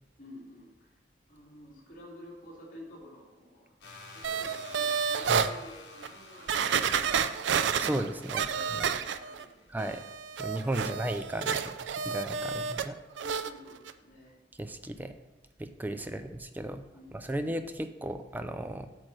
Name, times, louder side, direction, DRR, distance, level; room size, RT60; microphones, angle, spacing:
voice 1, 0.2-0.9 1.3-3.7 4.1-7.9 8.5-9.7 12.4-12.6 13.2-14.3 16.0-16.2 16.9-17.4, left 1 dB, 45° left, -6 dB, 2.5 m, -51 dB
sound 1, 3.8-10.6, left 2 dB, 65° left, 1.5 m, -52 dB
sound 2, 4.2-5.5 6.0-6.1 6.5-9.4 9.8-12.9 13.2-13.5 13.9-14.0, right 7 dB, 75° right, 0.4 m, -30 dB
voice 2, 7.8-8.9 9.7-10.0 10.4-12.9 14.6-15.1 15.6-16.8 17.1-18.9, right 1 dB, 10° right, 9 dB, 0.4 m, -35 dB
8.5 x 3.2 x 6.1 m, 1.0 s
head